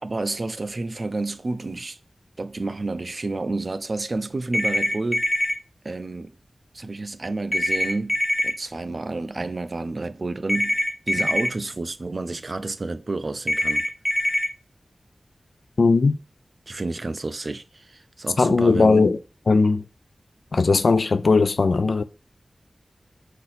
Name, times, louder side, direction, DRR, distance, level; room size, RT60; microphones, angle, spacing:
voice 1, 0.0-2.0 2.4-5.3 5.8-6.3 6.7-8.2 8.4-13.9 16.7-19.1, right 2 dB, 50° right, 0.3 m, -30 dB
sound 1, 4.5-5.5 7.5-8.5 10.5-11.5 13.5-14.5, left 1 dB, 15° left, 0.7 m, -23 dB
voice 2, 15.8-16.2 18.4-19.2 19.5-19.8 20.5-22.0, left 4 dB, 70° left, 0.3 m, -18 dB
4.1 x 2.6 x 4.1 m
wide cardioid pair, 70°, 0 cm